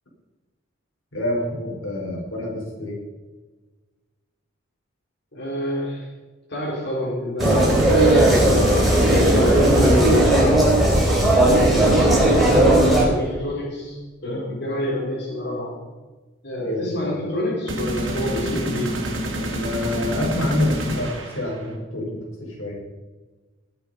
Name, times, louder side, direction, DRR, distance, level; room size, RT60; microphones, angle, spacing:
voice 1, 1.1-3.0 9.8-10.0 14.2-14.4 16.6-17.1 19.4-22.8, left 1 dB, 85° left, -2 dB, 5.5 m, -27 dB
voice 2, 5.3-6.1 6.5-8.7 9.3-10.6 11.4-15.8 16.4-19.0, left 1 dB, 55° left, -4 dB, 4.3 m, -28 dB
sound 1, 7.4-13.0, right 1 dB, ahead, 4.7 m, -16 dB
sound 2, 7.4-10.8 17.7-21.7, equal, 65° right, 3.1 m, -29 dB
20.0 x 8.6 x 5.3 m, 1.3 s
head